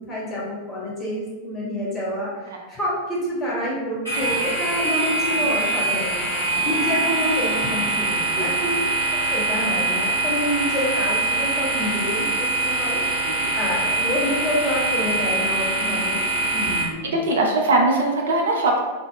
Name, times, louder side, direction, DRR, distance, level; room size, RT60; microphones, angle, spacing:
voice 1, 0.1-2.4 2.7-6.2 6.6-8.8 9.1-13.0 13.5-16.2 16.5-17.1, left 1 dB, 20° left, -6 dB, 1.1 m, -27 dB
sound 1, 4.0-16.8, right 3 dB, 90° right, 0.8 m, -23 dB
voice 2, 17.0-18.8, right 2 dB, 65° right, 0 dB, 0.4 m, -21 dB
2.1 x 2.0 x 3.6 m, 1.2 s
figure-of-eight pair, 90°, 0 cm